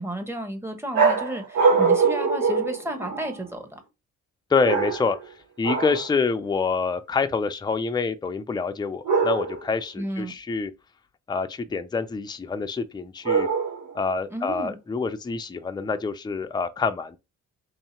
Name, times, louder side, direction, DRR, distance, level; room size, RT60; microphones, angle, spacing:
voice 1, 0.0-3.8 10.0-10.3 14.3-14.8, right 1 dB, 10° right, 1.1 m, -32 dB
sound 1, 0.9-3.4 4.6-5.3 5.6-6.1 9.0-9.7 13.2-14.0, right 5 dB, 85° right, 1.4 m, -23 dB
voice 2, 4.5-5.2 5.6-10.7 11.3-13.5 13.9-17.2, left 4 dB, 15° left, 0.5 m, -26 dB
3.2 x 2.8 x 4.3 m
cardioid pair, 90°, 30 cm